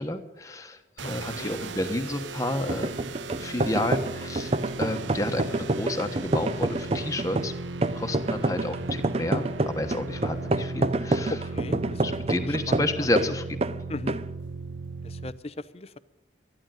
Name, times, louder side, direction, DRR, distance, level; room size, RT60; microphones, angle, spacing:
voice 1, 0.0-3.0 3.4-4.5 4.8-7.5 7.9-11.4 11.7-13.6, left 1 dB, 20° left, 6 dB, 1.2 m, -30 dB
voice 2, 1.0-1.5 11.3-11.8 12.7-13.1 13.9-14.2 15.0-16.0, left 2 dB, 35° left, 15 dB, 0.6 m, -37 dB
sound 1, 1.0-15.3, right 3 dB, 85° right, 0.7 m, -37 dB
sound 2, 2.7-13.3 13.6-13.8 14.1-14.3, right 2 dB, 35° right, 0.5 m, -27 dB
13.0 x 11.5 x 9.1 m, 1.0 s
head